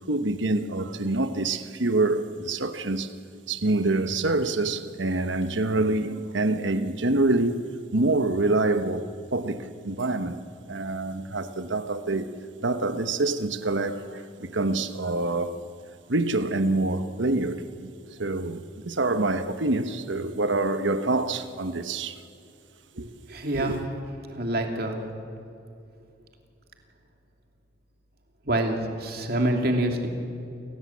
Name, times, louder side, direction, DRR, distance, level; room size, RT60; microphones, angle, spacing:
voice 1, 0.1-3.1 3.5-7.6 7.9-10.4 10.7-12.3 12.6-15.6 16.1-22.2 23.0-23.1 23.5-23.8, right 2 dB, 75° right, 1.2 m, -26 dB
voice 2, 23.3-23.7 24.3-25.0 28.5-30.1, right 1 dB, 50° right, 2.7 m, -26 dB
28.5 x 17.5 x 8.5 m
head